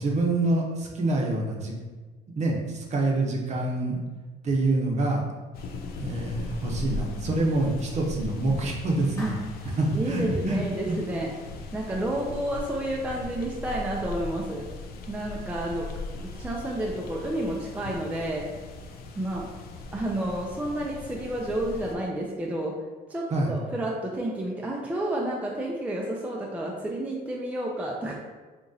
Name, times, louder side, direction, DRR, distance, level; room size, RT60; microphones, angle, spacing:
voice 1, 0.0-1.7 2.3-4.0 4.4-5.2 6.0-9.3 9.8-11.0 23.3-23.5, right 2 dB, 40° right, -1 dB, 0.7 m, -26 dB
sound 1, 5.5-22.0, left 3 dB, 65° left, 0.4 m, -39 dB
Clapping, 9.2-9.9, left 1 dB, 20° left, 0.8 m, -43 dB
voice 2, 9.9-11.3 11.7-14.6 15.1-15.9 16.3-18.5 19.1-19.5 19.9-22.7 23.1-28.1, right 1 dB, 10° right, -2 dB, 0.4 m, -30 dB
3.7 x 2.9 x 2.7 m, 1.3 s
cardioid pair, 110°, 17 cm